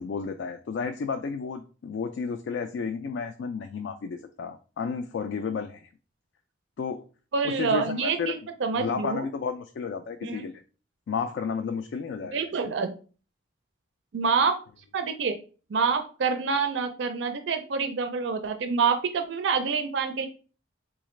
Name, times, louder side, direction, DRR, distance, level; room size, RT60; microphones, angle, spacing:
voice 1, 0.0-5.9 6.8-7.0 7.4-8.4 8.8-10.6 11.1-12.4 12.6-12.7, left 5 dB, 70° left, 6 dB, 0.3 m, -32 dB
voice 2, 7.3-9.3 10.2-10.5 12.3-12.9 14.1-14.6 14.9-15.4 15.7-20.3, right 5 dB, 70° right, 7 dB, 0.4 m, -27 dB
4.0 x 2.4 x 3.1 m, 0.37 s
head